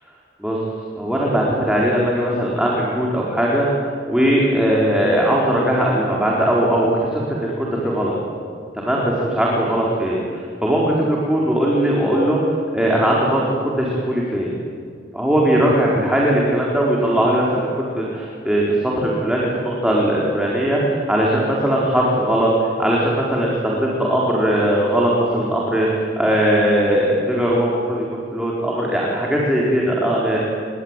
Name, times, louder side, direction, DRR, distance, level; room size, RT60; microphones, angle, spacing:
voice 1, 1.0-3.7 4.1-8.1 8.7-12.4 12.7-14.5 15.1-17.7 18.0-30.4, right 1 dB, 5° right, -4 dB, 4.3 m, -19 dB
29.0 x 22.5 x 9.1 m, 2.2 s
head